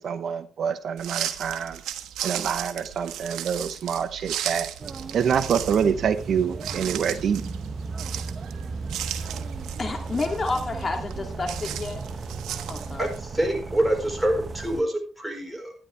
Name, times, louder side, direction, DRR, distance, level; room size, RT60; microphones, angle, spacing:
voice 1, 0.0-1.8 2.2-4.7 5.1-7.4, right 7 dB, 60° right, 11 dB, 0.8 m, -26 dB
sound 1, 1.0-13.2, right 10 dB, 85° right, 1.2 m, -36 dB
sound 2, 4.8-14.8, right 4 dB, 35° right, 0.8 m, -36 dB
voice 2, 9.8-12.0 12.7-13.1, left 3 dB, 35° left, 4 dB, 2.6 m, -29 dB
voice 3, 13.0-15.7, right 1 dB, 5° right, 3 dB, 4.5 m, -26 dB
13.0 x 10.0 x 3.4 m, 0.35 s
cardioid pair, 90°, 0 cm